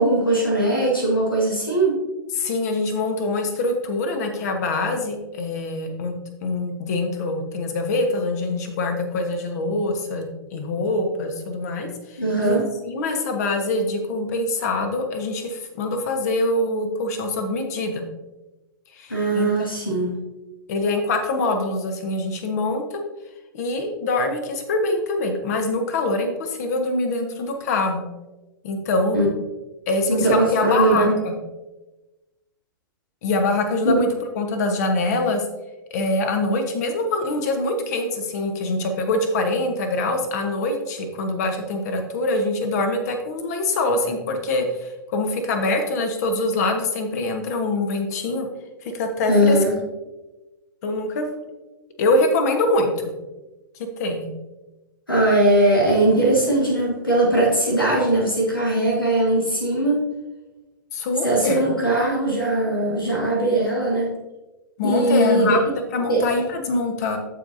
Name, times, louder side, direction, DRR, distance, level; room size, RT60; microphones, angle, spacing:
voice 1, 0.0-2.0 12.2-12.7 19.1-20.2 29.1-29.3 30.1-31.1 33.8-34.0 49.3-49.7 55.1-60.0 61.2-64.1 64.8-65.6 66.1-66.2, right 1 dB, 85° left, -2 dB, 1.9 m, -20 dB
voice 2, 2.4-6.1 6.4-12.6 12.8-18.0 18.9-19.7 20.7-23.0 23.5-28.0 28.6-29.2 29.9-31.4 33.2-34.1 34.3-35.4 35.9-48.5 48.8-49.6 50.8-51.2 52.0-53.1 54.0-54.3 60.9-61.6 64.8-65.6 65.9-67.2, left 2 dB, 50° left, 5 dB, 1.4 m, -24 dB
14.0 x 4.9 x 2.7 m, 1.1 s
figure-of-eight pair, 105°, 11 cm